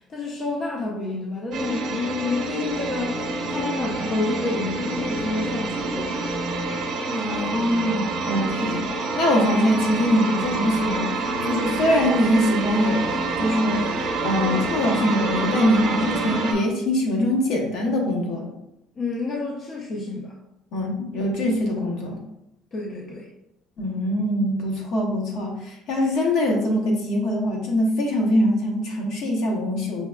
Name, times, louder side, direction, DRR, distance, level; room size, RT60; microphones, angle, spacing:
voice 1, 0.1-3.2 3.5-6.2 19.0-20.3 22.7-23.3, left 3 dB, 35° left, -2 dB, 0.6 m, -29 dB
sound 1, 1.5-16.5, right 2 dB, 50° right, 0.7 m, -27 dB
voice 2, 7.1-8.9 9.2-11.1 11.5-13.0 13.4-13.8 14.2-18.5 20.7-22.2 23.8-30.1, equal, 65° left, 0 dB, 0.9 m, -23 dB
5.6 x 2.4 x 2.3 m, 0.85 s
cardioid pair, 135°, 0 cm